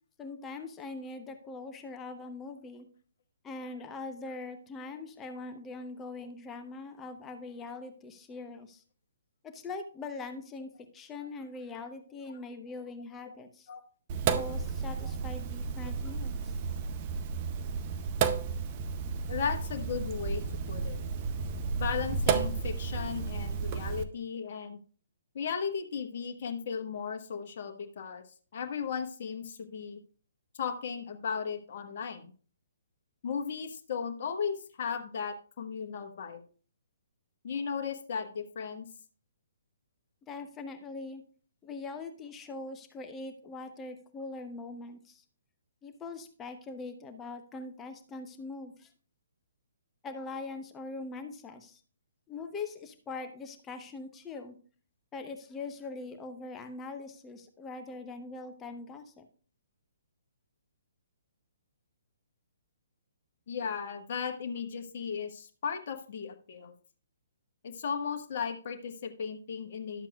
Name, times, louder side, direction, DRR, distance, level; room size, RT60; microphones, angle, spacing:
voice 1, 0.2-2.9 3.4-8.8 9.4-13.7 14.2-16.6 40.3-41.2 41.6-45.2 45.8-48.9 50.0-51.8 52.3-54.6 55.1-59.3, left 3 dB, 15° left, 6 dB, 0.9 m, -42 dB
Sink (filling or washing), 14.1-24.0, right 5 dB, 30° right, 0.6 m, -32 dB
voice 2, 19.3-20.4 20.7-21.0 21.7-24.8 25.3-28.2 28.5-30.0 30.5-32.3 33.2-36.4 37.4-38.9 63.5-66.7 67.6-70.1, left 6 dB, 45° left, 4 dB, 1.2 m, -36 dB
12.0 x 7.4 x 2.4 m, 0.40 s
figure-of-eight pair, 130°, 0 cm